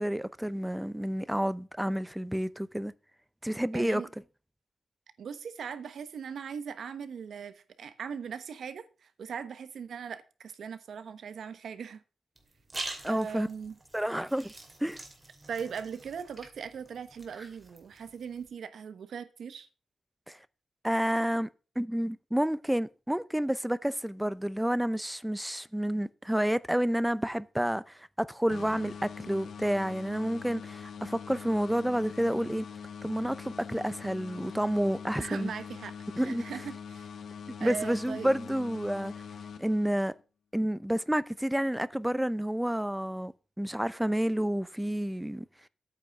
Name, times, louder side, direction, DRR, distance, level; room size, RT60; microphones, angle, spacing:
voice 1, 0.0-2.9 3.4-4.0 13.0-13.5 13.9-14.5 14.8-15.0 20.3-20.4 20.8-21.5 21.8-32.6 33.0-35.5 36.2-36.4 37.6-39.1 39.6-40.1 40.5-45.5, equal, 5° right, 0.6 m, -30 dB
voice 2, 3.7-4.1 5.2-12.0 13.1-13.8 15.5-19.7 35.2-37.1 37.6-38.4, right 7 dB, 85° right, 1.1 m, -39 dB
sound 1, 12.3-18.5, right 2 dB, 20° right, 2.5 m, -45 dB
sound 2, 28.5-40.2, left 6 dB, 80° left, 0.8 m, -43 dB
8.9 x 5.8 x 7.6 m
wide cardioid pair, 120°, 0 cm